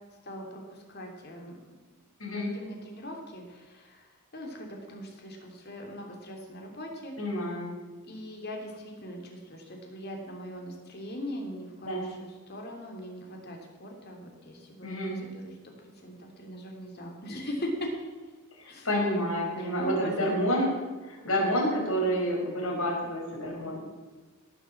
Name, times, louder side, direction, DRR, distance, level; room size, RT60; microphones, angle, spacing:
voice 1, 0.2-1.6 2.3-7.1 8.0-17.9 18.7-18.9 19.6-20.3, equal, 50° left, 1 dB, 3.2 m, -40 dB
voice 2, 7.2-7.7 11.8-12.1 14.8-15.2 18.6-20.7 21.0-23.9, equal, 75° left, -2 dB, 5.4 m, -29 dB
17.5 x 7.9 x 7.3 m, 1.3 s
head